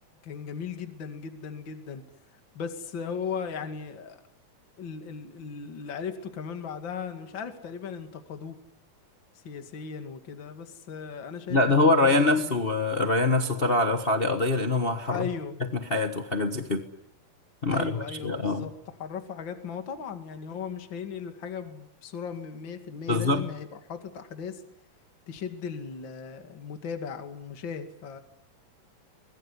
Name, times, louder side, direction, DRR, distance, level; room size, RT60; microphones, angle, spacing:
voice 1, 0.2-2.0 2.5-4.2 4.8-8.6 9.4-12.6 15.1-15.6 17.7-18.7 19.0-24.6 25.3-28.2, left 6 dB, 40° left, 6 dB, 2.7 m, -37 dB
voice 2, 11.5-15.3 15.7-16.8 17.6-18.7 23.1-23.5, left 2 dB, 70° left, 6 dB, 0.5 m, -24 dB
23.5 x 21.5 x 9.9 m, 0.77 s
omnidirectional pair, 3.6 m